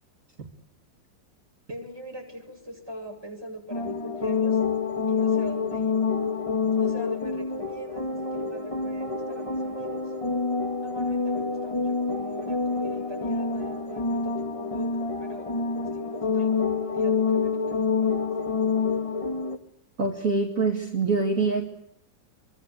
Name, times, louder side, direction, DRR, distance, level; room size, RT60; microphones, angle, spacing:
voice 1, 1.7-4.6 5.1-6.0 6.8-10.1 10.8-14.9 15.2-15.5 15.9-18.3, right 1 dB, 10° right, 2 dB, 7.8 m, -41 dB
sound 1, 3.7-19.6, left 4 dB, 20° left, 1.7 m, -27 dB
voice 2, 20.0-21.6, right 4 dB, 45° right, 2 dB, 2.8 m, -24 dB
27.0 x 23.5 x 8.3 m, 0.72 s
omnidirectional pair, 2.0 m